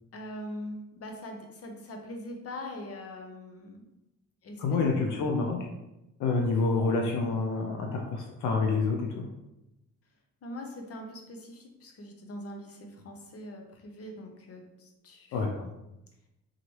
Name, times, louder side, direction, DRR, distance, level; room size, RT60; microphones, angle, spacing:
voice 1, 0.1-3.8 4.4-4.8 10.4-15.7, left 1 dB, 50° left, 3 dB, 0.9 m, -42 dB
voice 2, 4.6-5.6 6.2-9.3 15.3-15.5, left 4 dB, 80° left, 1 dB, 0.6 m, -27 dB
3.9 x 3.1 x 3.1 m, 0.93 s
cardioid pair, 90°, 30 cm